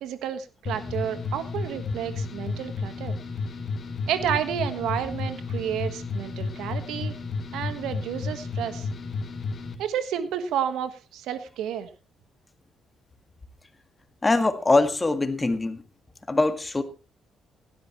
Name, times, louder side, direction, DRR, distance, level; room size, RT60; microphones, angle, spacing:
voice 1, 0.0-3.2 4.1-7.1 7.5-8.9 9.8-11.9, right 9 dB, 85° right, 1.4 m, -30 dB
sound 1, 0.7-9.8, left 4 dB, 45° left, 2.4 m, -32 dB
voice 2, 14.2-15.8 16.3-16.8, left 2 dB, 20° left, 1.9 m, -22 dB
18.0 x 12.0 x 3.1 m
cardioid pair, 80°, 0 cm